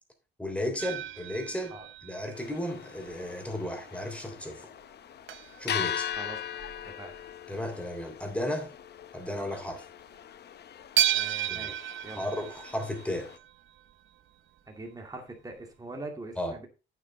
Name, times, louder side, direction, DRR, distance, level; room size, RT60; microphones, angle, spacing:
voice 1, 0.4-1.7 2.0-4.7 5.6-6.1 7.5-8.7 9.1-9.8 11.5-11.7 12.2-13.3 16.4-16.6, left 1 dB, 5° left, 3.3 m, -34 dB
sound 1, 0.8-3.3 3.7-3.9 4.4-4.5 4.7-4.8 5.3-7.4 7.8-8.0 8.3-8.4 9.0-9.2 9.6-9.7 11.0-13.9 15.1-15.2 15.6-15.7, right 12 dB, 75° right, 0.8 m, -34 dB
sound 2, 2.3-13.4, left 9 dB, 55° left, 0.8 m, -40 dB
voice 2, 11.1-12.2 14.7-16.7, right 2 dB, 20° right, 2.2 m, -42 dB
8.6 x 7.8 x 3.8 m
cardioid pair, 90°, 20 cm